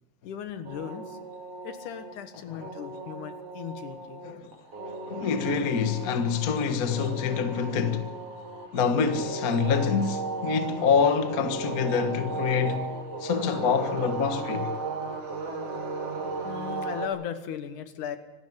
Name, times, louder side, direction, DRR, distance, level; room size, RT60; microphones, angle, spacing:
voice 1, 0.2-1.2 1.6-4.2 15.5-15.9 16.4-18.2, left 9 dB, 75° left, 2.8 m, -37 dB
sound 1, 0.7-17.1, right 3 dB, 50° right, 3.8 m, -36 dB
voice 2, 4.2-4.5 5.1-8.2 8.7-14.7, left 6 dB, 45° left, 1.2 m, -26 dB
25.5 x 12.5 x 9.6 m
omnidirectional pair, 3.7 m